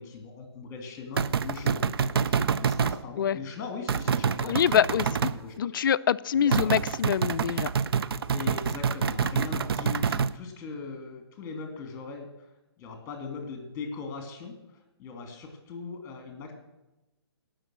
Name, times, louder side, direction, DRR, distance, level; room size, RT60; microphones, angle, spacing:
voice 1, 0.0-5.7 6.4-6.7 8.3-12.5 12.8-14.6 15.0-16.5, left 4 dB, 20° left, 4 dB, 2.5 m, -40 dB
sound 1, 1.2-3.0 3.9-5.4 6.5-10.3, right 6 dB, 60° right, 0.6 m, -27 dB
voice 2, 4.4-5.3 5.6-7.7, left 8 dB, 50° left, 17 dB, 0.4 m, -25 dB
17.5 x 6.2 x 6.2 m, 0.98 s
hypercardioid pair, 140°, 14 cm